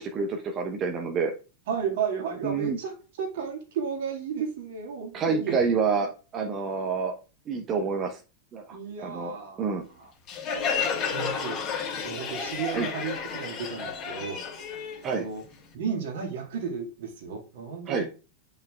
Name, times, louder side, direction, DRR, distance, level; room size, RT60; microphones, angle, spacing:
voice 1, 0.0-1.3 2.4-2.8 5.1-7.2 7.5-8.2 8.5-9.8 11.2-11.3 12.7-12.9 15.0-15.3 17.9-18.1, right 5 dB, 30° right, 2 dB, 0.9 m, -28 dB
voice 2, 1.7-5.6 8.7-9.7 10.0-10.1 10.8-11.6 12.0-14.4 15.1-15.4 15.7-18.1, right 6 dB, 55° right, 1 dB, 2.1 m, -33 dB
Crowd, 10.3-15.7, left 6 dB, 35° left, 2.6 m, -31 dB
8.9 x 5.6 x 2.4 m, 0.34 s
figure-of-eight pair, 90°, 0 cm